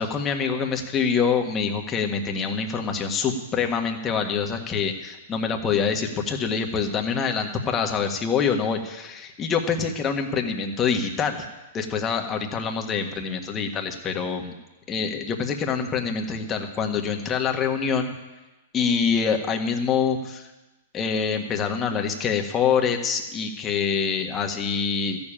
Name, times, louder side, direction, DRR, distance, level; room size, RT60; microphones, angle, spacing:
voice 1, 0.0-11.5 11.7-14.5 14.9-18.1 18.7-20.5 20.9-25.2, left 6 dB, 25° left, 3 dB, 1.6 m, -25 dB
14.0 x 7.1 x 8.9 m, 1.1 s
hypercardioid pair, 120°, 0 cm